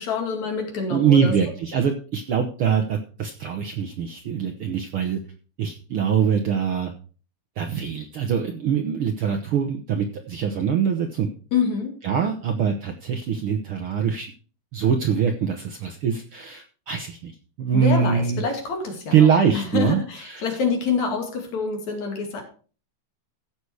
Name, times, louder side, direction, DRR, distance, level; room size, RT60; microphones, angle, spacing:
voice 1, 0.0-1.3 11.5-11.9 17.7-22.4, left 5 dB, 65° left, 3 dB, 3.7 m, -26 dB
voice 2, 0.9-5.2 5.6-6.9 7.6-11.3 12.0-14.3 14.7-17.3 17.6-18.4 19.1-20.6, right 7 dB, 65° right, 5 dB, 1.4 m, -23 dB
15.0 x 6.2 x 4.8 m, 0.39 s
omnidirectional pair, 3.5 m